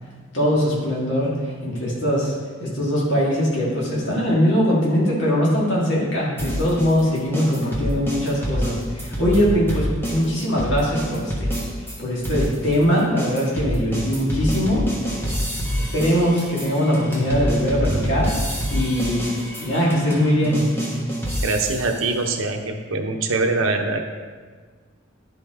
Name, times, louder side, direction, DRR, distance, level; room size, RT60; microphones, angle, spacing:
voice 1, 0.3-1.3 1.6-2.3 2.6-11.3 12.0-14.8 15.7-18.3 18.7-19.2 19.6-20.6, equal, 65° left, -6 dB, 2.2 m, -21 dB
sound 1, 6.4-12.0 12.2-22.0, equal, 10° left, 1.3 m, -26 dB
voice 2, 21.4-24.0, right 3 dB, 80° right, 4 dB, 0.9 m, -23 dB
11.0 x 5.3 x 3.7 m, 1.5 s
head